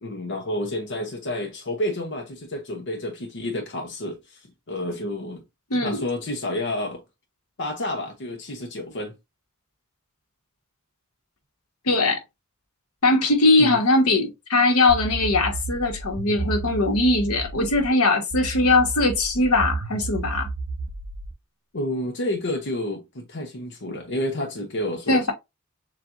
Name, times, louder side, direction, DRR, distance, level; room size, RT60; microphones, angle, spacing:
voice 1, 0.0-5.4 5.8-7.0 7.6-9.1 13.6-13.8 21.7-25.3, left 1 dB, 60° left, 0.8 m, -30 dB
voice 2, 11.8-12.2 13.0-20.5 25.1-25.3, left 2 dB, 90° left, 1.4 m, -20 dB
sound 1, 14.9-17.9 18.3-21.3, right 3 dB, 65° right, 1.2 m, -32 dB
6.8 x 2.5 x 2.6 m
head